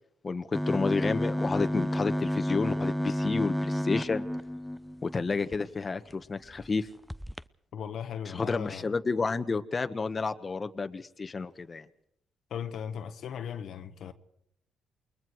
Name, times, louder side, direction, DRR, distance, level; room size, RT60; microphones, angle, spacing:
voice 1, 0.2-4.2 5.0-6.9 8.3-11.8, left 4 dB, 35° left, 1.5 m, -30 dB
sound 1, 0.5-5.6 6.1-6.2 6.5-6.7 7.1-7.4, equal, ahead, 0.8 m, -31 dB
voice 2, 7.7-8.9 12.5-14.1, left 8 dB, 70° left, 1.5 m, -37 dB
29.0 x 21.5 x 4.8 m
supercardioid pair, 55°, 0 cm